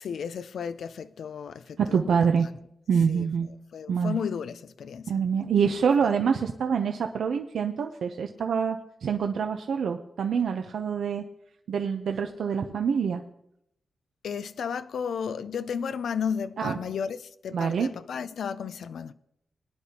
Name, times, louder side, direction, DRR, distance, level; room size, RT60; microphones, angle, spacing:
voice 1, 0.0-2.2 3.1-3.3 3.7-5.5 6.0-6.1 14.2-19.1, left 7 dB, 85° left, 0.4 m, -33 dB
voice 2, 1.8-2.5 2.9-3.5 3.9-4.2 5.1-11.2 11.7-13.2 16.6-16.8 17.5-17.9, right 6 dB, 80° right, 0.7 m, -26 dB
20.5 x 10.0 x 2.9 m
wide cardioid pair, 105°, 0 cm